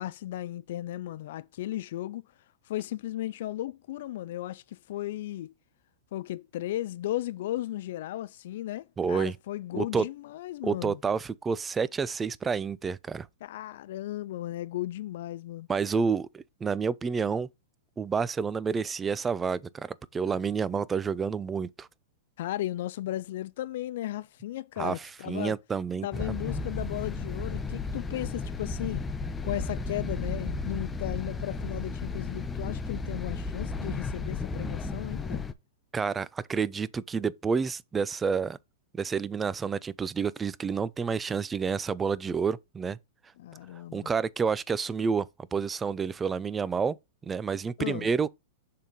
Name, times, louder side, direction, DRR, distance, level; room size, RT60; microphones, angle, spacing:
voice 1, 0.0-2.2 2.7-5.5 6.1-11.0 13.4-15.7 22.4-25.5 26.0-29.0 29.4-35.5 43.4-44.1 47.8-48.1, left 14 dB, 60° left, 0.3 m, -35 dB
voice 2, 9.0-9.4 9.7-10.1 10.6-13.3 15.7-17.5 18.0-21.9 24.8-26.3 35.9-38.6 38.9-43.0 43.9-47.0 47.2-48.3, right 5 dB, 15° right, 0.4 m, -29 dB
sound 1, 26.1-35.5, left 3 dB, 15° left, 0.7 m, -34 dB
6.5 x 3.6 x 5.2 m
hypercardioid pair, 110°, 0 cm